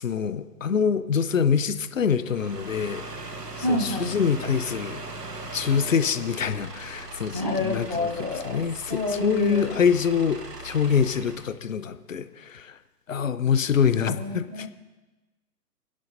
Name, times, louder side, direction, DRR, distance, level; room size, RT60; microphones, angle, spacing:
voice 1, 0.0-3.0 3.5-5.0 5.5-12.8 13.1-14.7, left 7 dB, 55° left, 12 dB, 0.8 m, -25 dB
sound 1, 2.2-11.6, right 2 dB, 80° right, 1.2 m, -39 dB
voice 2, 3.6-4.1 7.3-8.6 8.9-9.7 13.9-14.7, left 2 dB, 20° right, 4 dB, 0.4 m, -28 dB
29.0 x 10.5 x 2.7 m, 1.1 s
figure-of-eight pair, 125°, 47 cm